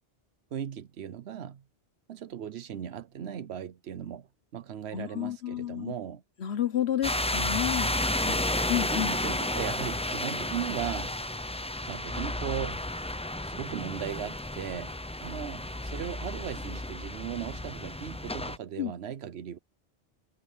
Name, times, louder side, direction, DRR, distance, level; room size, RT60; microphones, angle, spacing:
voice 1, 0.5-1.6 2.1-6.2 8.2-8.5 8.9-11.1 11.9-12.8 13.4-14.9 15.2-19.6, right 9 dB, 70° right, 1.0 m, -37 dB
voice 2, 4.9-5.9 6.4-7.9 8.7-9.1 18.8-18.9, left 11 dB, 65° left, 1.1 m, -30 dB
sound 1, 7.0-18.6, left 1 dB, 10° left, 0.4 m, -32 dB
omnidirectional pair, 1.2 m